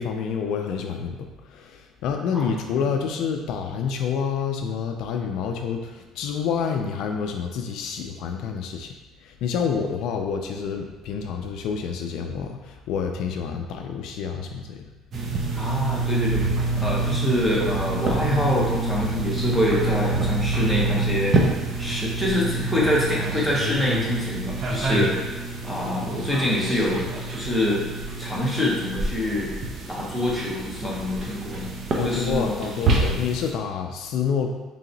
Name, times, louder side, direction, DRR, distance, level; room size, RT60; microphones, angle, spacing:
voice 1, 0.0-14.9 31.9-34.5, left 6 dB, 65° left, 4 dB, 0.3 m, -28 dB
voice 2, 2.3-2.8 15.5-16.4 16.8-21.4 21.8-25.4 25.6-27.8 28.2-29.5 29.9-32.7, left 1 dB, ahead, -5 dB, 0.8 m, -25 dB
sound 1, 15.1-33.5, right 2 dB, 40° right, 0.6 m, -27 dB
3.3 x 2.8 x 3.8 m, 1.2 s
cardioid pair, 145°, 0 cm